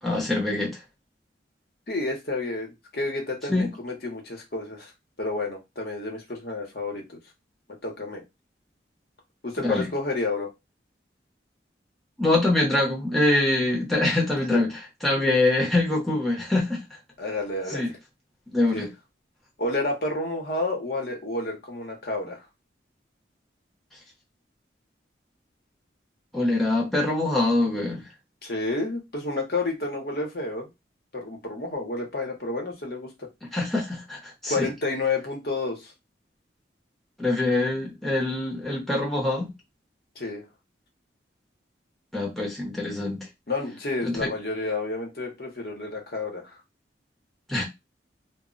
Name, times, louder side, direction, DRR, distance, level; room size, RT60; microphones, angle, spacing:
voice 1, 0.0-0.8 3.5-3.7 9.6-9.9 12.2-14.7 15.0-16.8 17.7-17.9 18.5-18.9 26.3-28.0 33.5-34.7 37.2-39.5 42.1-43.2 44.0-44.3 47.5-47.6, left 2 dB, ahead, 0.6 m, -24 dB
voice 2, 1.9-4.9 5.2-7.2 7.8-8.2 9.4-10.5 14.5-14.6 17.2-18.0 18.7-18.9 19.6-22.5 28.4-30.7 31.1-33.3 34.5-35.9 40.2-40.4 43.5-46.6, left 2 dB, 55° left, 0.8 m, -30 dB
2.1 x 2.0 x 3.7 m
head